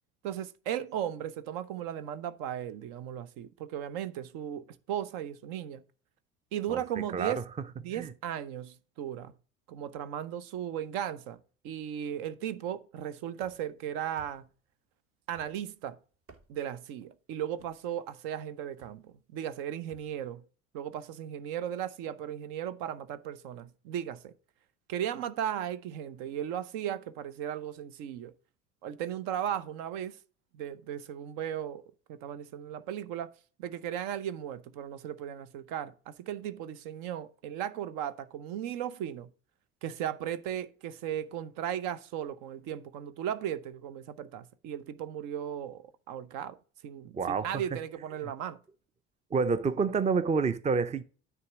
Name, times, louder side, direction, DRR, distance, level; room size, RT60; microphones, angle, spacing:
voice 1, 0.2-5.8 6.5-7.4 7.8-9.3 9.7-11.4 11.6-14.5 15.3-16.0 16.5-20.4 20.7-24.3 24.9-28.3 28.8-30.2 30.5-31.8 32.1-33.3 33.6-39.3 39.8-46.6 46.8-48.6, right 10 dB, 65° right, 0.8 m, -36 dB
voice 2, 7.1-7.4 7.9-8.1 47.1-47.6 49.3-51.0, right 5 dB, 20° right, 0.6 m, -28 dB
sound 1, 13.4-13.8 14.2-14.6 15.3-15.8 16.1-16.8 17.6-17.9 18.8-19.1 19.9-20.2, right 3 dB, 35° right, 1.3 m, -57 dB
9.6 x 3.6 x 5.9 m
hypercardioid pair, 65°, 37 cm